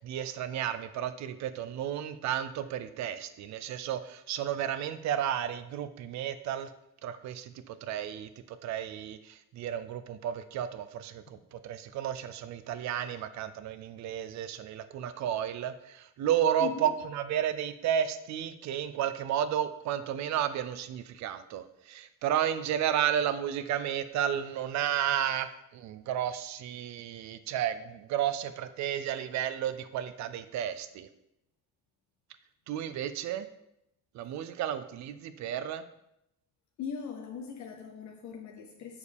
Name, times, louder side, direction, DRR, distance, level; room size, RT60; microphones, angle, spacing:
voice 1, 0.0-6.7 7.0-31.1 32.7-33.5 34.1-35.8, right 10 dB, 55° right, 12 dB, 0.5 m, -32 dB
voice 2, 16.6-16.9 36.8-39.0, left 6 dB, 60° left, 2 dB, 0.8 m, -40 dB
7.2 x 6.3 x 3.4 m, 0.81 s
cardioid pair, 165°, 33 cm